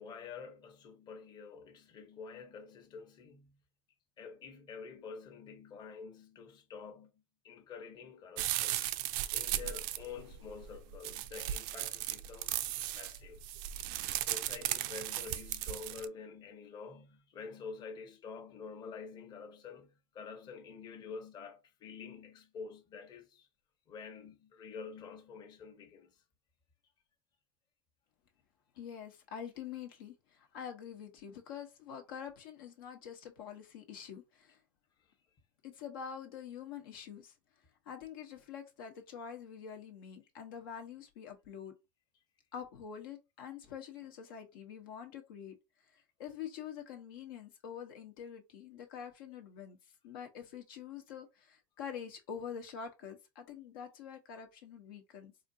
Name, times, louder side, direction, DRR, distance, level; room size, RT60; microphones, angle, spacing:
voice 1, 0.0-3.6 4.2-7.1 7.4-8.8 9.3-12.6 12.9-13.4 13.9-23.5 23.9-26.2, left 5 dB, 35° left, 1.0 m, -48 dB
sound 1, 8.4-16.1, right 14 dB, 60° right, 0.4 m, -36 dB
voice 2, 28.8-34.6 35.6-37.3 37.9-41.7 42.5-45.6 46.2-49.8 50.0-55.3, left 8 dB, 80° left, 1.0 m, -46 dB
4.2 x 2.5 x 2.7 m
supercardioid pair, 115°, 12 cm